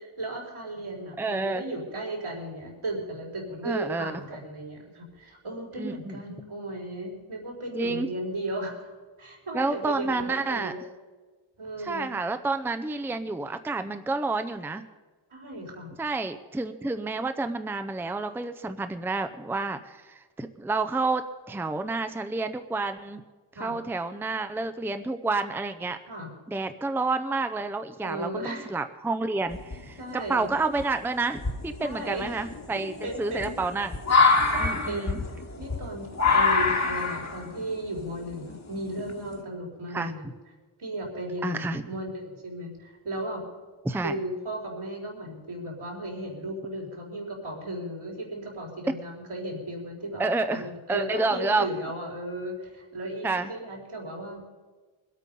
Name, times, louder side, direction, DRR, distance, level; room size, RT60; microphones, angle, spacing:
voice 1, 0.0-8.9 9.2-10.8 11.6-12.2 15.3-15.9 23.6-23.8 26.1-26.3 28.0-28.7 30.0-30.6 31.8-32.3 32.7-33.5 34.5-35.3 35.6-40.3 40.8-43.4 43.9-50.2 50.5-54.4, right 1 dB, 80° right, -2 dB, 4.3 m, -35 dB
voice 2, 1.2-1.6 3.6-4.2 5.8-6.2 7.8-8.1 9.5-10.7 11.8-14.8 16.0-23.2 23.6-26.0 26.5-33.9 34.6-35.2 39.9-40.1 41.4-41.8 43.9-44.1 50.2-50.6 50.9-51.7 53.2-53.5, right 3 dB, 5° right, 9 dB, 0.5 m, -29 dB
sound 1, 29.5-30.1 30.8-30.9 31.4-39.4, left 4 dB, 35° left, 1.5 m, -25 dB
22.5 x 8.5 x 5.3 m, 1.4 s
wide cardioid pair, 105°, 49 cm